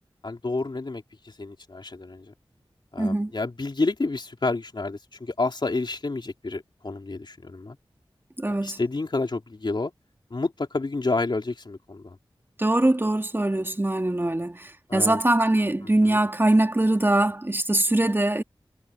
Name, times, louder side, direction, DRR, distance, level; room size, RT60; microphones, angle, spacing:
voice 1, 0.2-2.3 2.9-7.8 8.5-9.9 10.3-12.2 14.9-15.2 16.0-16.2, left 3 dB, 55° left, 3.4 m, -29 dB
voice 2, 3.0-3.3 8.4-8.8 12.6-18.4, right 1 dB, 25° right, 2.5 m, -22 dB
wide cardioid pair, 55°, 9 cm